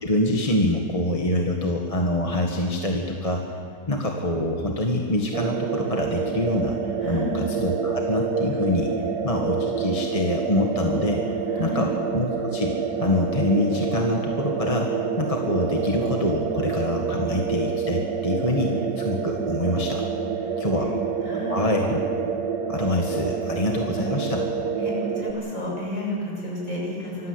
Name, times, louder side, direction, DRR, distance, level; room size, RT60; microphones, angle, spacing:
voice 1, 0.0-3.4 3.9-6.8 7.0-8.9 9.2-11.2 11.6-12.7 13.0-14.9 15.2-20.0 20.6-20.9 21.3-22.0 22.7-24.5, left 1 dB, 20° left, 1 dB, 1.7 m, -25 dB
sound 1, 5.3-25.3, right 6 dB, 65° right, 1.7 m, -28 dB
voice 2, 7.0-7.4 11.5-11.8 20.4-20.9 21.2-21.6 24.8-27.3, left 1 dB, 50° left, -4 dB, 7.8 m, -31 dB
25.5 x 15.5 x 8.1 m, 2.4 s
omnidirectional pair, 1.9 m